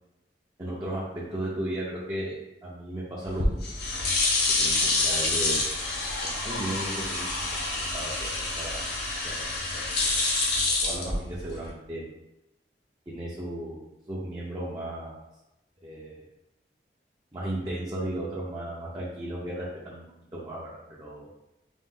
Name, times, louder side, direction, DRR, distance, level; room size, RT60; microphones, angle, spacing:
voice 1, 0.6-2.4 2.6-3.7 4.6-5.6 6.4-8.8 9.2-9.8 10.6-12.1 13.1-15.2 15.8-16.2 17.3-20.0 20.3-21.3, right 1 dB, 20° right, -7 dB, 0.6 m, -35 dB
sound 1, 3.2-11.7, left 3 dB, 60° left, 0.9 m, -27 dB
4.0 x 2.4 x 3.7 m, 0.93 s
head